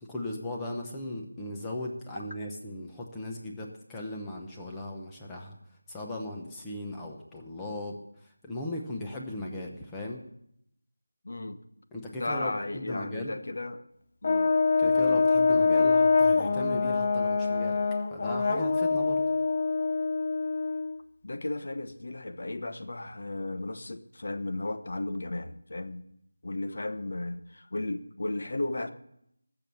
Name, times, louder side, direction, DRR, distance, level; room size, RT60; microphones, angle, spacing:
voice 1, 0.0-5.6 5.9-8.0 8.4-10.2 11.9-13.4 14.8-17.8 18.1-19.2, left 1 dB, 5° left, 0.8 m, -37 dB
voice 2, 11.2-11.6 12.2-13.8 14.2-14.6 21.2-26.1 26.4-28.9, left 2 dB, 45° left, 1.0 m, -34 dB
Brass instrument, 14.2-21.0, left 4 dB, 25° left, 0.4 m, -24 dB
18.5 x 7.0 x 7.0 m
figure-of-eight pair, 180°, 0 cm